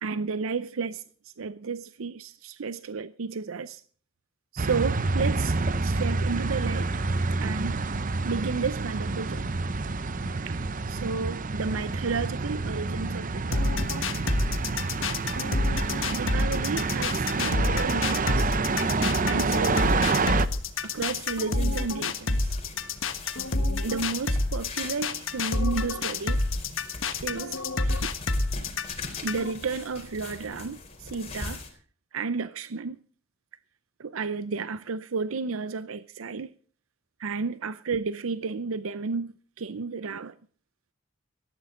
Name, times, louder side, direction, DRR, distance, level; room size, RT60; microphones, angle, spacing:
voice 1, 0.0-1.0 1.4-3.8 4.5-6.9 7.4-7.8 8.2-9.5 10.5-10.6 10.9-13.8 15.2-15.4 15.7-18.5 19.3-20.1 20.8-22.5 23.8-26.4 27.2-28.1 29.2-31.6 32.1-33.0 34.0-36.5 37.2-40.3, right 4 dB, 85° right, 0.6 m, -32 dB
sound 1, 4.6-20.5, right 3 dB, 40° right, 0.7 m, -28 dB
sound 2, 13.5-29.5, left 2 dB, 65° left, 1.5 m, -28 dB
sound 3, 19.7-31.7, left 3 dB, 30° left, 3.9 m, -42 dB
18.5 x 13.5 x 3.8 m
head